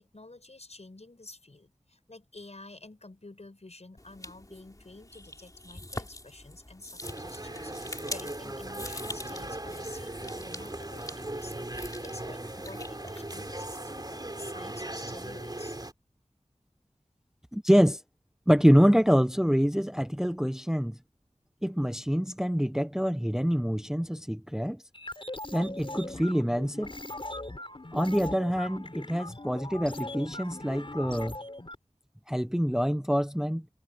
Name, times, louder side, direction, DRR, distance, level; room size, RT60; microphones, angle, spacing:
voice 1, 0.0-15.8, left 2 dB, 70° left, 6.9 m, -49 dB
sound 1, 4.0-13.7, left 1 dB, 30° left, 3.6 m, -44 dB
sound 2, 7.0-15.9, right 1 dB, 35° right, 3.4 m, -38 dB
voice 2, 17.5-18.0 18.5-21.0 21.6-24.8 25.5-26.9 27.9-31.3 32.3-33.6, equal, 5° right, 0.9 m, -25 dB
sound 3, 24.9-31.7, left 2 dB, 50° left, 4.6 m, -40 dB
wide cardioid pair, 50°, 12 cm